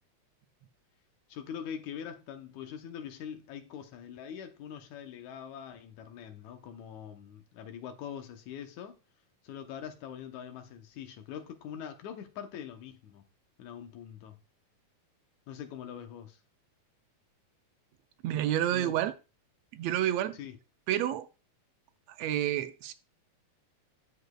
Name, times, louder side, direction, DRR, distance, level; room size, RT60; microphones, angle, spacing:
voice 1, 1.3-9.0 9.4-13.2 13.6-14.4 15.5-16.4 18.7-19.0 20.4-20.6, left 8 dB, 80° left, 2.3 m, -43 dB
voice 2, 18.2-19.1 19.7-20.4 20.9-21.3 22.2-22.9, right 12 dB, 75° right, 1.7 m, -29 dB
14.0 x 5.0 x 2.3 m
omnidirectional pair, 3.3 m